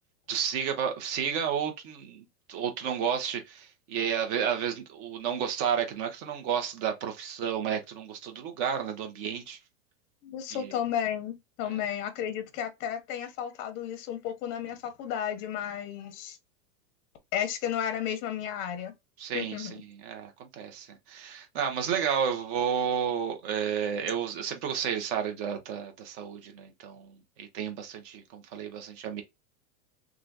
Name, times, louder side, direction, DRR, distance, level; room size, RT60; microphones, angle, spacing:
voice 1, 0.3-9.6 10.6-10.7 11.7-11.8 19.2-29.2, right 8 dB, 45° right, 1.1 m, -32 dB
voice 2, 10.2-16.4 17.3-18.9 19.3-19.7, left 9 dB, 25° left, 0.6 m, -33 dB
3.0 x 2.5 x 2.7 m
supercardioid pair, 145°, 47 cm